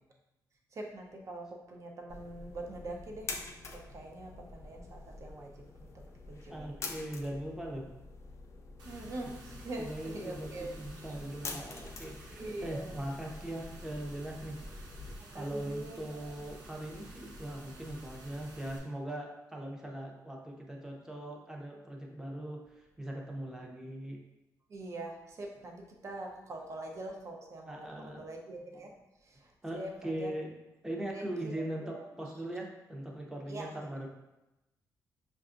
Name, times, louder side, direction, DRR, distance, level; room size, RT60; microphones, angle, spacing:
voice 1, 0.7-3.3 3.7-6.0 6.3-6.7 8.8-10.7 11.7-11.8 12.3-13.0 15.3-16.3 24.7-30.3 31.1-31.2 31.5-32.1 33.5-33.7, right 2 dB, 45° right, 1 dB, 0.7 m, -43 dB
sound 1, 2.1-15.2, left 3 dB, 45° left, 0.5 m, -47 dB
voice 2, 6.5-7.9 9.0-9.3 9.8-15.0 15.3-24.2 27.7-28.2 29.6-30.5 30.8-34.1, right 1 dB, 10° right, 0 dB, 0.6 m, -40 dB
sound 2, 8.8-18.8, right 1 dB, 85° right, 0.7 m, -51 dB
5.6 x 2.3 x 2.5 m, 0.96 s
cardioid pair, 115°, 7 cm